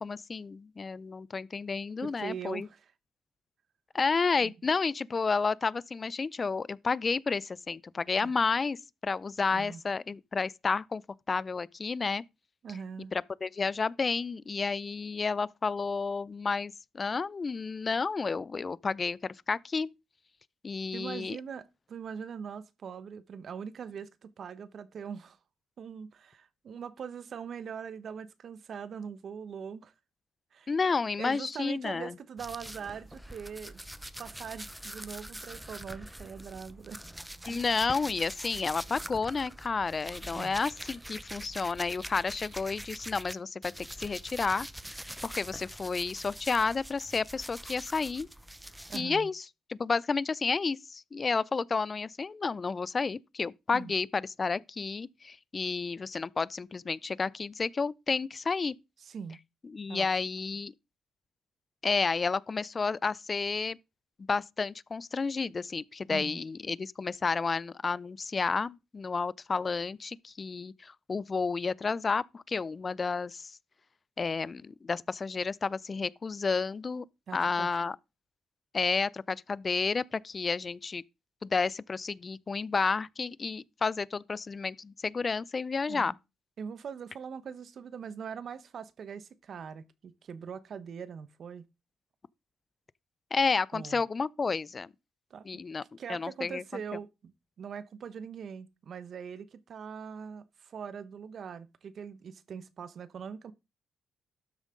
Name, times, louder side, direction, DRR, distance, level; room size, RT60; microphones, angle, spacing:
voice 1, 0.0-2.7 3.9-11.0 11.3-12.2 13.1-19.9 20.6-21.4 30.7-32.1 37.5-44.7 45.0-48.3 48.9-49.4 49.7-58.7 59.7-60.7 61.8-63.8 64.3-73.5 74.2-77.0 77.3-78.0 78.7-81.0 81.4-86.1 93.3-94.9 95.4-95.8 96.1-96.8, left 4 dB, 35° left, 0.4 m, -31 dB
voice 2, 2.0-2.9 4.4-4.5 8.2-8.3 9.5-9.8 12.6-13.1 20.9-25.4 25.8-29.9 30.5-30.7 31.2-37.0 37.5-37.6 40.3-40.6 48.9-49.3 53.7-53.9 59.0-59.4 59.9-60.1 66.1-66.4 77.3-77.7 85.9-86.1 86.6-91.7 93.7-94.0 95.3-95.4 96.0-97.3 97.6-103.5, right 7 dB, 55° right, 0.9 m, -42 dB
sound 1, 32.4-43.3 43.6-49.0, right 1 dB, 5° right, 0.7 m, -44 dB
12.5 x 7.3 x 3.7 m
cardioid pair, 90°, 0 cm